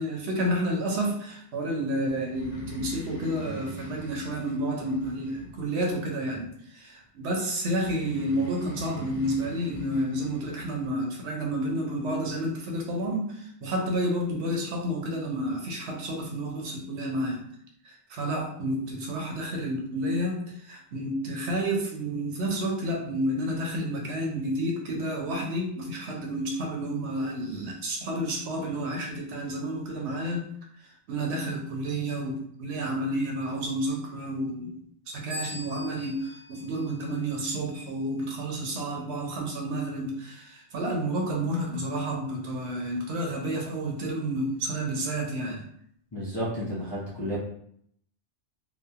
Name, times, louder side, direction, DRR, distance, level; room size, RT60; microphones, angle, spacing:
voice 1, 0.0-17.4 17.8-30.4 30.8-34.8 35.1-45.6, right 1 dB, 70° right, 0 dB, 0.8 m, -30 dB
Breathing, 2.3-5.9 7.8-10.9, equal, 75° left, 1.1 m, -42 dB
sound 1, 35.3-37.8, left 3 dB, 45° right, 0.5 m, -43 dB
voice 2, 46.1-47.4, equal, 35° left, -9 dB, 0.4 m, -32 dB
2.7 x 2.2 x 2.3 m, 0.68 s
omnidirectional pair, 1.2 m